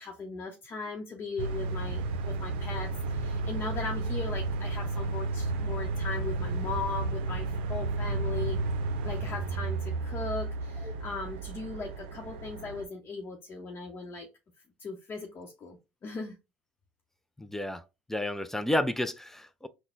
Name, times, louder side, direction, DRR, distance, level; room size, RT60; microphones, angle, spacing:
voice 1, 0.0-8.6 9.0-14.3 14.8-16.4, left 4 dB, 35° left, 0.8 m, -38 dB
sound 1, 1.4-12.8, right 3 dB, 85° right, 0.5 m, -32 dB
voice 2, 17.4-17.8 18.1-19.7, left 1 dB, 5° left, 0.4 m, -31 dB
3.9 x 2.1 x 3.9 m
supercardioid pair, 90°, 6 cm